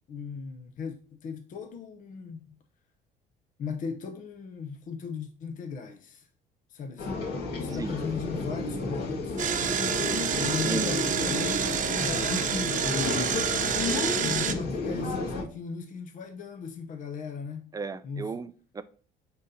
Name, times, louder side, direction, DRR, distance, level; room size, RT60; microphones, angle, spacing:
voice 1, 0.1-2.6 3.6-6.3 6.7-7.2 7.6-9.5 10.4-12.5 13.9-17.8 18.0-18.3, left 6 dB, 50° left, 0.8 m, -37 dB
sound 1, 7.0-15.4, left 3 dB, 70° left, 1.9 m, -31 dB
Engine, 9.4-14.5, right 8 dB, 50° right, 0.8 m, -28 dB
voice 2, 10.5-10.9 17.7-18.8, right 5 dB, 20° right, 0.5 m, -35 dB
9.4 x 3.9 x 2.7 m
cardioid pair, 110°, 17 cm